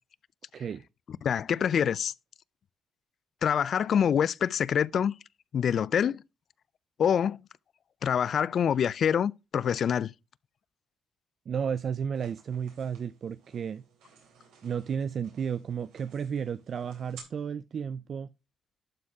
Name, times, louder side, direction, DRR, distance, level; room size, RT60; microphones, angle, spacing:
voice 1, 0.5-0.8 11.5-13.8 14.6-18.3, right 7 dB, 55° right, 0.4 m, -33 dB
voice 2, 1.2-2.1 3.4-5.1 5.5-6.2 7.0-7.4 8.0-10.1, left 8 dB, 60° left, 0.4 m, -26 dB
sound 1, 12.1-17.2, right 6 dB, 90° right, 3.4 m, -56 dB
11.5 x 4.3 x 4.8 m
cardioid pair, 90°, 0 cm